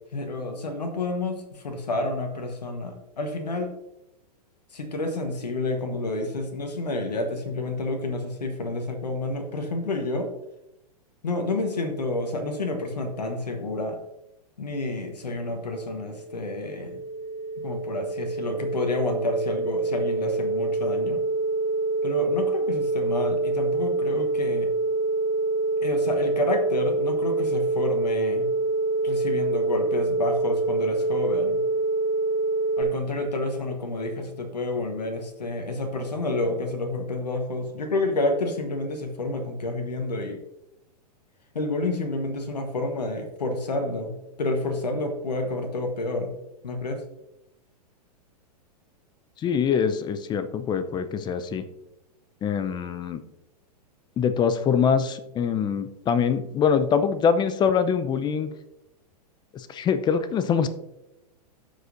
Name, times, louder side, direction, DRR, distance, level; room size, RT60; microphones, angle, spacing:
voice 1, 0.1-3.7 4.7-10.3 11.2-14.0 14.6-17.0 17.6-21.2 22.0-24.7 25.8-28.5 29.0-31.6 32.8-40.4 41.5-46.3 46.6-47.0, left 2 dB, 85° left, 5 dB, 1.2 m, -29 dB
sound 1, 15.8-32.8, right 3 dB, 30° right, 1.6 m, -26 dB
voice 2, 49.4-51.6 52.4-53.2 54.2-58.5 59.5-60.7, left 7 dB, 20° left, 12 dB, 0.6 m, -24 dB
13.5 x 5.2 x 2.6 m, 0.88 s
hypercardioid pair, 110°, 21 cm